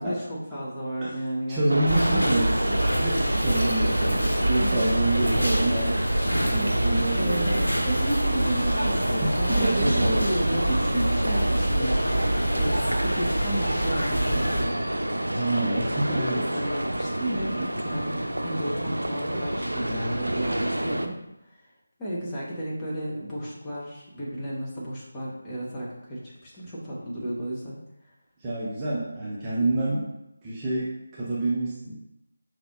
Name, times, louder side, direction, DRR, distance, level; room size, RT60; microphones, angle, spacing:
voice 1, 0.0-2.2 4.6-4.8 6.5-6.7 7.0-14.8 16.1-16.2 16.5-21.1 21.5-21.6 22.0-27.8, right 1 dB, 15° left, -7 dB, 1.0 m, -32 dB
voice 2, 1.5-6.0 6.5-7.6 9.2-10.2 15.3-16.5 28.4-30.1 30.4-32.0, right 2 dB, 15° right, -8 dB, 0.7 m, -27 dB
sound 1, 1.7-21.1, right 1 dB, 85° right, 0.5 m, -29 dB
sound 2, 1.9-14.6, right 1 dB, 90° left, 1.1 m, -26 dB
5.2 x 3.4 x 2.4 m, 0.87 s
figure-of-eight pair, 160°, 0 cm